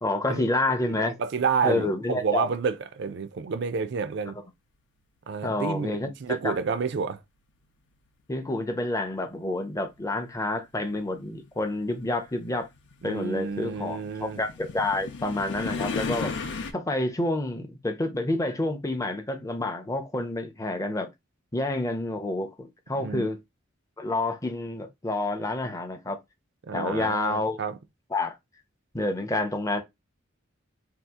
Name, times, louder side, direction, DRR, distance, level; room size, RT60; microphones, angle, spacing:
voice 1, 0.0-1.1 1.6-2.5 5.4-6.6 8.3-12.7 13.0-16.3 16.7-21.1 21.5-23.4 24.0-26.2 26.7-27.6 28.1-28.3 28.9-29.8, left 2 dB, 15° left, 0.5 m, -28 dB
voice 2, 0.8-4.4 5.3-7.2 13.0-14.4 23.0-23.2 26.7-27.8, right 5 dB, 60° right, 0.4 m, -29 dB
sound 1, 9.5-9.6 10.6-16.7, left 4 dB, 60° left, 0.5 m, -35 dB
2.8 x 2.4 x 3.5 m
head